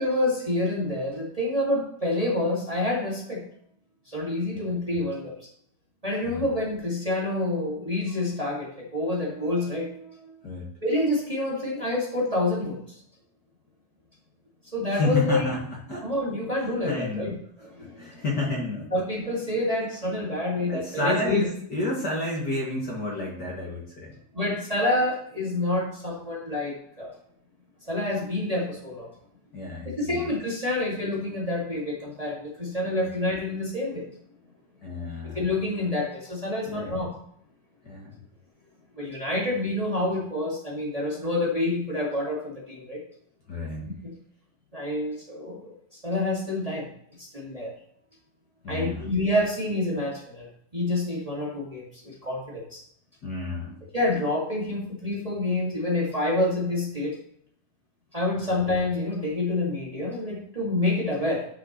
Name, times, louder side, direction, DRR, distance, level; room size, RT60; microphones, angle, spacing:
voice 1, 0.0-3.4 4.1-5.3 6.0-10.3 10.8-12.8 14.7-15.4 16.0-18.2 18.9-21.4 24.3-27.1 27.8-29.1 29.8-34.1 35.3-37.1 39.0-43.0 44.0-44.1 44.7-46.9 47.2-47.7 48.7-50.5 50.7-52.8 53.9-57.2 58.1-61.5, left 1 dB, 20° right, -4 dB, 0.9 m, -28 dB
voice 2, 14.9-16.1 16.8-17.3 18.0-18.9 20.7-24.1 29.5-30.3 34.8-35.4 36.7-37.0 37.8-38.1 43.5-43.9 48.6-49.0 53.2-53.8 58.4-58.5, left 2 dB, 35° left, -4 dB, 2.0 m, -30 dB
12.5 x 5.9 x 3.1 m, 0.68 s
omnidirectional pair, 4.3 m